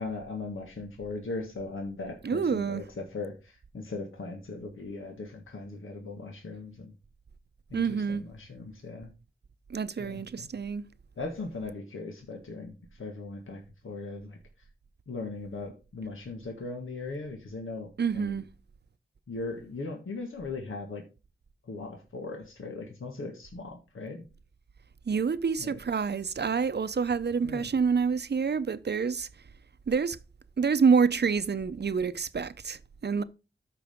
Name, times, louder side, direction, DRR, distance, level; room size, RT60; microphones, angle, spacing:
voice 1, 0.0-6.9 7.7-9.1 10.0-10.5 11.2-14.4 15.1-18.4 19.3-21.0 21.6-24.3 25.6-25.7 27.4-27.7, left 3 dB, 80° left, 1.6 m, -39 dB
voice 2, 2.2-2.8 7.7-8.2 9.7-10.8 18.0-18.5 25.1-29.3 29.9-30.2 30.6-33.2, right 5 dB, 55° right, 0.7 m, -27 dB
13.0 x 5.0 x 3.6 m
cardioid pair, 50°, 20 cm